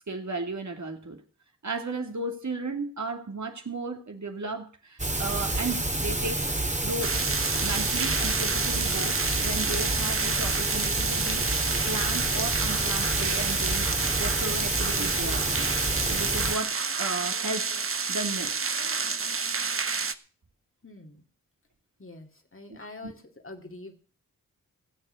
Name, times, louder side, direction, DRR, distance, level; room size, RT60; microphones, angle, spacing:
voice 1, 0.1-1.2 1.6-6.5 6.8-11.6 11.9-15.7 16.1-18.6 22.7-23.1, right 3 dB, 55° right, 4 dB, 2.6 m, -35 dB
sound 1, 5.0-16.6, right 2 dB, 20° right, 2.4 m, -28 dB
sound 2, 7.0-20.1, right 5 dB, 40° right, 1.0 m, -30 dB
voice 2, 20.8-21.2 22.0-23.9, left 2 dB, 40° left, 4 dB, 2.6 m, -45 dB
16.5 x 7.7 x 6.5 m, 0.41 s
cardioid pair, 45°, 34 cm